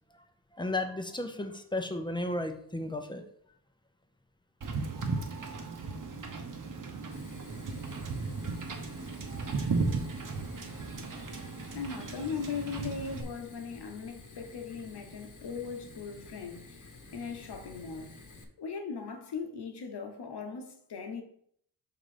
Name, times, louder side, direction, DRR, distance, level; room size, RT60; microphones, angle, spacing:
voice 1, 0.5-3.2, left 2 dB, 10° left, 0.7 m, -34 dB
Wind / Boat Water vehicle, 4.6-13.2, right 4 dB, 55° right, 1.0 m, -35 dB
Fire, 7.1-18.4, left 3 dB, 50° left, 1.1 m, -51 dB
voice 2, 11.7-16.9 17.1-18.2 18.6-21.2, left 5 dB, 85° left, 1.2 m, -39 dB
5.9 x 3.9 x 5.0 m
wide cardioid pair, 125°, 39 cm